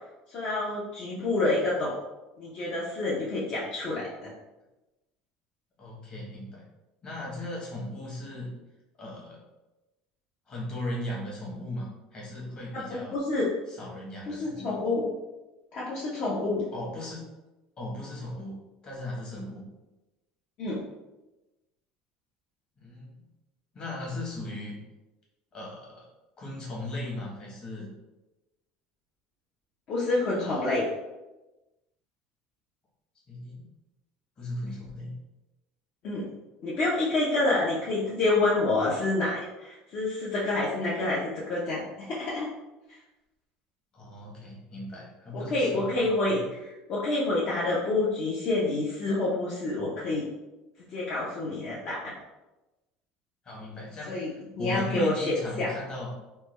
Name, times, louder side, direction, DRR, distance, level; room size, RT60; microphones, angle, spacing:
voice 1, 0.3-1.9 2.4-4.3 12.9-13.5 14.3-15.1 15.7-16.6 20.6-20.8 29.9-30.8 36.0-36.3 36.6-42.5 42.9-43.0 45.3-50.3 50.9-52.1 54.1-55.7, left 2 dB, 50° left, -7 dB, 0.7 m, -28 dB
voice 2, 5.8-6.6 7.0-8.5 9.0-9.4 10.5-13.2 13.7-14.7 16.7-17.2 17.8-19.7 22.8-23.3 23.7-24.8 25.5-26.1 26.4-27.9 30.4-30.7 33.3-33.7 34.4-35.1 43.9-46.4 53.4-56.1, left 1 dB, 30° left, -4 dB, 1.1 m, -37 dB
3.2 x 2.2 x 3.1 m, 1.0 s
cardioid pair, 135°, 3 cm